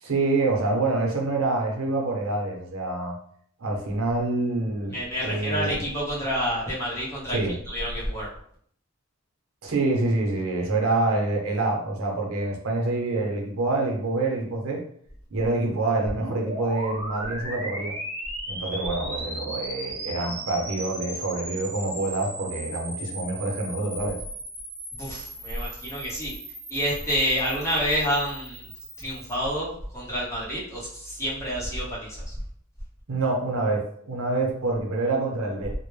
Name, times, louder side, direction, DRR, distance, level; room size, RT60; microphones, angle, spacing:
voice 1, 0.0-3.2 3.6-5.0 5.2-5.8 7.3-7.6 9.6-14.8 15.3-17.9 18.5-24.2 33.1-35.7, right 2 dB, 90° right, 0 dB, 0.6 m, -26 dB
voice 2, 4.9-7.4 7.7-8.3 24.9-26.3 26.7-28.7 29.0-32.3, equal, 15° left, -7 dB, 0.7 m, -28 dB
sound 1, 16.0-29.4, right 1 dB, 25° right, 0.8 m, -37 dB
2.1 x 2.0 x 3.1 m, 0.64 s
head